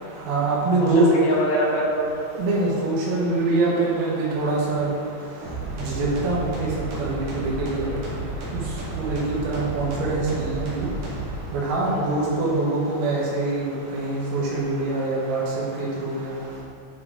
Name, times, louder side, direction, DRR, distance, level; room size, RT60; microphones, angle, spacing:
voice 1, 0.3-1.1 2.4-4.9 6.0-6.7 7.0-7.9 9.0-10.9 11.5-15.4 15.8-16.3, right 3 dB, 85° right, -5 dB, 4.2 m, -24 dB
voice 2, 1.0-2.1 7.8-8.2 11.8-12.5, equal, 80° left, -6 dB, 4.1 m, -26 dB
sound 1, 5.4-11.4, right 2 dB, 55° right, 3.4 m, -32 dB
10.5 x 4.8 x 3.8 m, 2.2 s
omnidirectional pair, 5.9 m